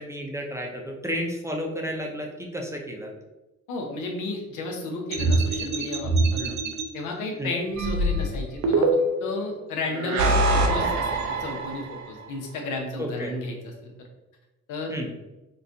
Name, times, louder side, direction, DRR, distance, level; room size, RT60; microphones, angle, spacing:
voice 1, 0.0-3.1 7.4-7.6 13.0-13.3 14.9-15.1, equal, 10° right, 1 dB, 0.5 m, -32 dB
voice 2, 3.7-6.6 6.9-8.9 9.2-13.9 14.7-14.9, left 2 dB, 90° left, 1 dB, 0.7 m, -33 dB
sound 1, 5.1-6.8 7.8-9.3 9.9-12.1, right 2 dB, 70° right, 0.6 m, -23 dB
4.0 x 2.2 x 2.6 m, 1.0 s
cardioid pair, 90°, 30 cm